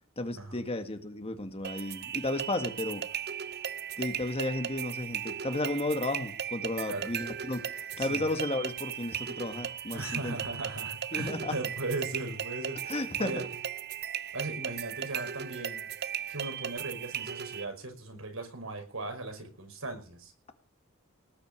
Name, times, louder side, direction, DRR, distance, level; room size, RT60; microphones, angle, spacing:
voice 1, 0.2-3.0 4.0-10.4 11.1-11.5 12.9-13.4, left 2 dB, 30° left, 7 dB, 1.9 m, -33 dB
sound 1, 1.6-17.6, right 9 dB, 50° right, 0.6 m, -37 dB
voice 2, 6.8-7.1 8.0-8.2 9.9-13.4 14.3-15.9 16.3-20.3, right 2 dB, 80° right, 5 dB, 5.5 m, -38 dB
19.0 x 6.8 x 9.5 m, 0.40 s
head